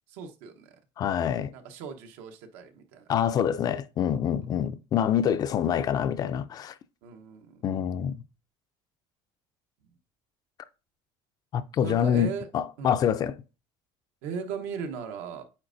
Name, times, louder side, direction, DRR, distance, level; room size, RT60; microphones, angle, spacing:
voice 1, 0.1-0.7 1.5-3.0 7.0-7.6 11.8-12.5 12.8-13.0 14.2-15.4, right 6 dB, 85° right, 1.0 m, -37 dB
voice 2, 1.0-1.5 3.1-6.7 7.6-8.1 11.5-13.4, left 9 dB, 40° left, 0.4 m, -26 dB
8.7 x 4.3 x 2.6 m
cardioid pair, 140°, 11 cm